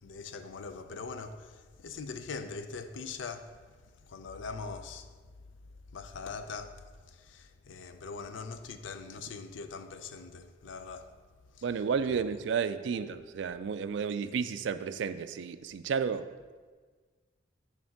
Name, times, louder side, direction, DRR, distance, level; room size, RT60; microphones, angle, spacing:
voice 1, 0.0-5.1 5.9-11.1 11.5-11.6 12.1-12.3 12.9-13.2, left 4 dB, 85° left, 0.5 m, -42 dB
voice 2, 11.6-16.3, right 6 dB, 75° right, 0.3 m, -32 dB
6.5 x 3.6 x 5.7 m
head